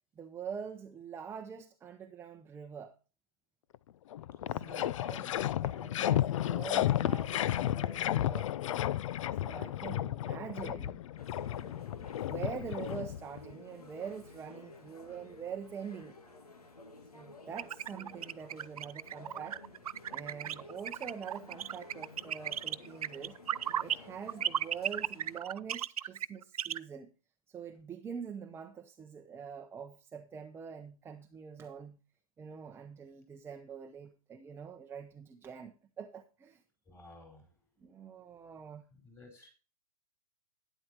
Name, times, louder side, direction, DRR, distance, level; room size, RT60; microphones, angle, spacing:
voice 1, 0.2-2.9 4.5-5.3 5.6-8.5 9.4-11.1 11.6-11.8 12.3-16.2 17.1-19.6 20.1-23.4 23.8-27.1 27.5-32.0 32.4-36.6 37.8-38.9, right 7 dB, 10° right, 0.8 m, -45 dB
sound 1, 3.7-3.8 4.1-13.5, left 12 dB, 60° left, 0.5 m, -33 dB
voice 2, 4.5-5.6 36.9-37.5 38.9-39.5, left 2 dB, 15° left, 4.8 m, -54 dB
sound 2, 11.2-25.4, left 3 dB, 85° left, 2.3 m, -53 dB
sound 3, 17.6-24.0 24.3-26.8, right 10 dB, 75° right, 0.5 m, -35 dB
12.0 x 10.0 x 2.9 m
hypercardioid pair, 125°, 19 cm